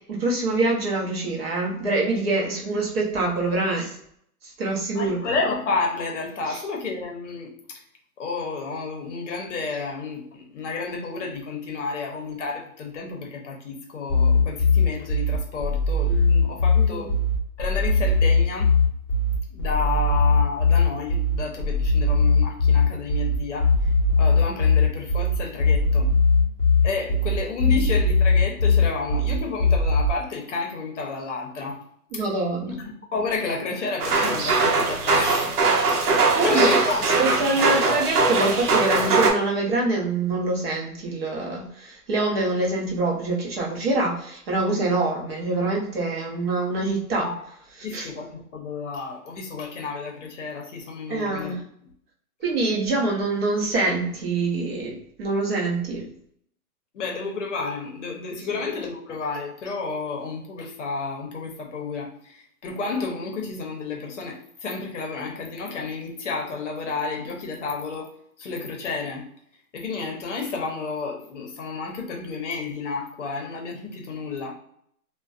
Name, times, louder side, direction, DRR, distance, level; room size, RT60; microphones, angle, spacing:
voice 1, 0.1-4.0 4.4-5.2 6.5-6.6 16.7-17.1 27.7-27.9 32.1-32.7 36.3-47.3 47.9-48.1 51.1-51.6 52.4-56.1, right 2 dB, 40° right, -2 dB, 0.7 m, -25 dB
voice 2, 4.9-7.8 8.2-17.1 17.6-18.7 19.5-23.7 24.2-26.1 26.8-31.8 32.1-32.2 32.8-35.6 36.0-37.7 47.2-47.4 47.8-51.6 56.9-68.1 68.4-69.2 69.7-74.5, left 4 dB, 55° left, 1 dB, 0.7 m, -31 dB
sound 1, 14.1-30.1, left 3 dB, 15° left, 0.6 m, -20 dB
sound 2, 34.0-39.3, right 3 dB, 85° right, 0.8 m, -21 dB
2.4 x 2.2 x 2.3 m, 0.67 s
hypercardioid pair, 150°, 44 cm